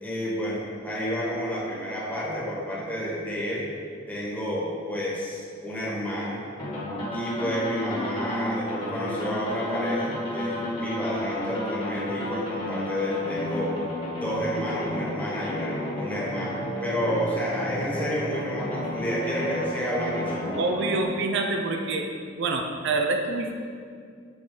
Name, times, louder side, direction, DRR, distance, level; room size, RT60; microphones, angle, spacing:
voice 1, 0.0-3.7 4.1-6.4 7.1-13.8 14.2-20.6, equal, 10° left, -6 dB, 1.4 m, -30 dB
sound 1, 6.6-21.0, left 1 dB, 30° left, 1.6 m, -32 dB
voice 2, 20.5-22.1 22.3-23.5, right 3 dB, 65° right, 3 dB, 0.5 m, -26 dB
7.8 x 4.3 x 3.8 m, 2.2 s
head